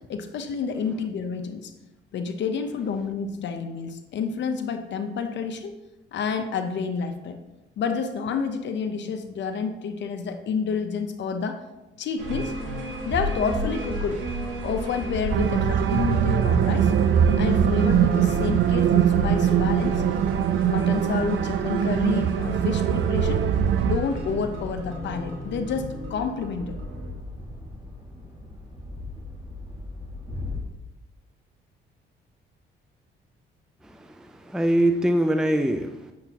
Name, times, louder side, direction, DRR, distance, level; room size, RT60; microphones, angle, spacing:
voice 1, 0.1-1.7 2.1-5.7 6.1-7.4 7.8-11.6 12.0-12.5 13.0-14.2 14.6-16.9 17.4-20.0 20.6-23.5 23.8-26.7, left 5 dB, 65° left, 6 dB, 0.8 m, -29 dB
sound 1, 12.2-27.1, equal, 85° right, 1.9 m, -33 dB
sound 2, 14.3-30.6, left 2 dB, 25° right, 1.9 m, -39 dB
sound 3, 15.3-24.0, right 10 dB, 60° right, 0.4 m, -22 dB
voice 2, 33.8-36.1, right 1 dB, 5° right, 6 dB, 0.4 m, -24 dB
8.8 x 6.9 x 2.9 m, 1.0 s
cardioid pair, 90°, 20 cm